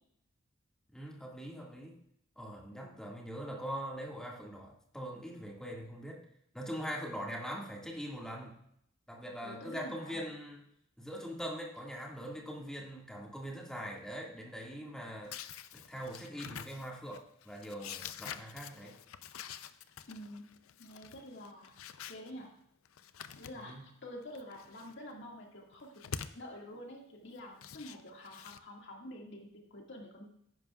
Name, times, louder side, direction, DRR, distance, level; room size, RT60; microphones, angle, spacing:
voice 1, 0.9-2.0 2.4-6.2 6.5-8.6 9.1-10.6 11.0-15.5 15.7-18.9 23.6-23.8, equal, 5° left, -2 dB, 2.0 m, -42 dB
voice 2, 9.4-10.2 20.1-20.5 20.8-21.8 22.1-22.5 23.4-25.9 26.3-30.3, left 1 dB, 60° left, 0 dB, 2.1 m, -48 dB
sound 1, 15.3-22.3 22.8-23.9 24.2-24.9 25.7-26.4 27.4-28.6, left 8 dB, 85° left, 0.5 m, -47 dB
14.5 x 10.5 x 2.4 m, 0.74 s
head